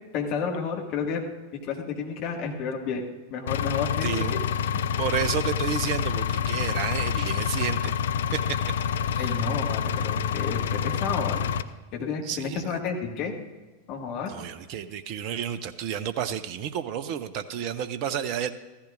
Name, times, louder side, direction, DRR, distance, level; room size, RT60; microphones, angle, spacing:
voice 1, 0.1-1.2 1.6-3.0 3.3-4.4 9.2-11.5 11.9-13.3 13.9-14.3, left 5 dB, 40° left, 1 dB, 1.9 m, -31 dB
Engine, 3.5-11.6, left 8 dB, 60° left, 0.4 m, -27 dB
voice 2, 4.0-4.4 5.0-7.9 8.3-8.6 9.1-9.3 12.2-12.8 14.3-18.5, right 9 dB, 45° right, 12 dB, 0.6 m, -31 dB
15.0 x 14.0 x 2.6 m, 1.2 s
figure-of-eight pair, 90°, 0 cm